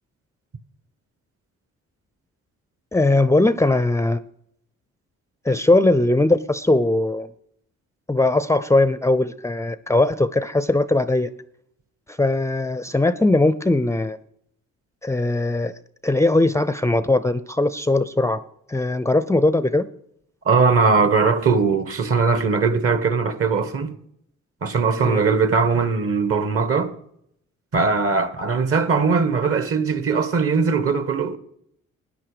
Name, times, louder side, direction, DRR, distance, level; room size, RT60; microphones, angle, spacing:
voice 1, 2.9-4.2 5.4-7.3 8.1-11.3 12.1-14.2 15.0-15.7 16.0-18.4 18.7-19.8 25.0-25.2, left 2 dB, 10° left, 0.5 m, -19 dB
voice 2, 20.4-24.0 24.6-26.9 27.7-31.4, right 4 dB, 50° right, 1.4 m, -20 dB
13.5 x 9.9 x 5.0 m
cardioid pair, 90°, 30 cm